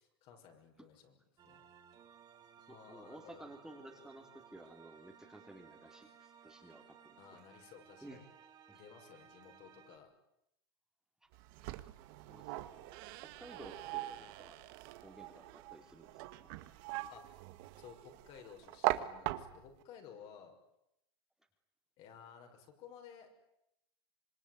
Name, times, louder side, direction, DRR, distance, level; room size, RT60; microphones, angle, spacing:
voice 1, 0.2-1.7 2.7-3.5 7.2-8.3 8.7-10.1 17.1-17.3 17.8-20.5 22.0-23.3, left 7 dB, 45° left, 4 dB, 6.2 m, -56 dB
sound 1, 1.4-10.0, right 8 dB, 30° right, 3.5 m, -60 dB
voice 2, 2.9-7.4 8.0-8.2 8.7-8.8 11.2-11.3 12.2-12.9 13.2-14.6 15.0-16.2 16.4-16.5, right 1 dB, 5° right, 2 dB, 3.1 m, -54 dB
sound 2, 11.3-19.8, right 16 dB, 60° right, 1.8 m, -41 dB
26.5 x 22.0 x 9.7 m, 0.84 s
supercardioid pair, 135°, 13 cm